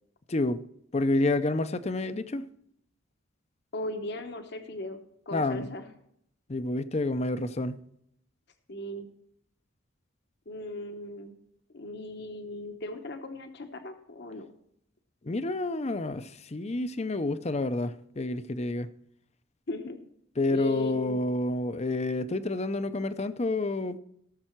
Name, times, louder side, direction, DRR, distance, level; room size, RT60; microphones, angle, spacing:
voice 1, 0.3-0.6 0.9-2.5 5.3-5.7 6.5-7.8 15.2-18.9 20.4-24.0, left 2 dB, 35° left, 0.6 m, -29 dB
voice 2, 3.7-5.0 5.3-5.9 8.7-9.1 10.5-11.4 11.7-14.5 19.7-20.0 20.5-21.2, left 2 dB, 55° left, 1.0 m, -37 dB
18.0 x 6.8 x 4.5 m
head